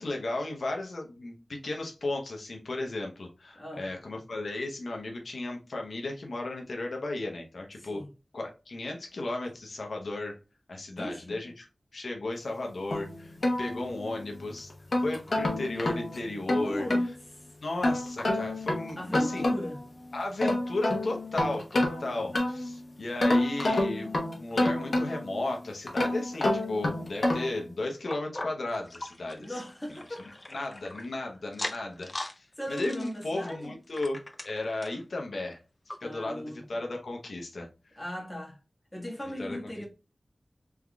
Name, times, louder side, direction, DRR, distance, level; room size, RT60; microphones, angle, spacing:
voice 1, 0.0-8.0 8.3-10.4 10.7-11.7 11.9-14.7 15.0-16.9 17.6-19.5 20.1-29.5 30.5-34.2 34.4-35.6 36.0-38.0 39.4-39.6, left 2 dB, 85° left, 0.7 m, -35 dB
voice 2, 3.5-3.9 7.8-8.1 10.9-11.4 16.6-17.0 17.3-17.5 19.0-19.8 29.4-30.4 30.7-30.8 31.2-31.3 32.6-33.7 36.0-36.8 38.0-38.6 38.9-39.9, equal, 15° left, 1.4 m, -38 dB
sound 1, 12.9-14.2 14.7-17.1 17.8-19.8 20.2-22.7 23.2-25.4 25.9-27.6, left 1 dB, 65° left, 1.0 m, -28 dB
sound 2, 28.1-31.1 31.5-32.4 32.7-35.0 35.5-35.6 35.9-36.0 36.6-36.7, left 2 dB, 35° left, 0.4 m, -40 dB
3.5 x 3.5 x 2.3 m
wide cardioid pair, 75°, 0 cm